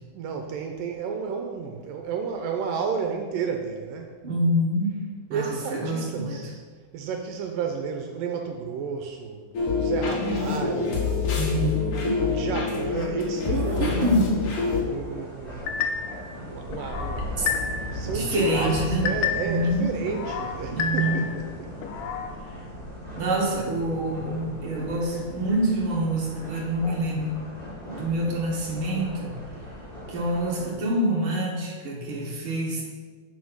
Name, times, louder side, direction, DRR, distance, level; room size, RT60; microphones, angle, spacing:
voice 1, 0.1-4.1 5.3-6.6 6.9-9.5 9.8-11.2 11.9-14.1 14.8-15.8 16.3-17.4 17.9-21.7, right 6 dB, 75° right, 4 dB, 2.1 m, -32 dB
voice 2, 4.2-5.0 5.3-6.4 11.3-11.8 12.0-12.1 13.5-14.5 17.4-17.5 18.1-19.1 19.4-19.9 20.7-21.3 23.2-27.4 27.8-29.4 30.1-32.8, right 1 dB, 55° right, -2 dB, 1.5 m, -26 dB
sound 1, 9.5-14.8, left 4 dB, 60° left, 2.7 m, -26 dB
sound 2, 13.2-30.7, left 1 dB, 15° left, 2.7 m, -38 dB
sound 3, 15.7-16.2 16.7-18.0 18.3-19.7 20.1-21.4 21.8-22.3, left 7 dB, 80° left, 2.4 m, -30 dB
8.5 x 5.4 x 6.2 m, 1.5 s
omnidirectional pair, 4.3 m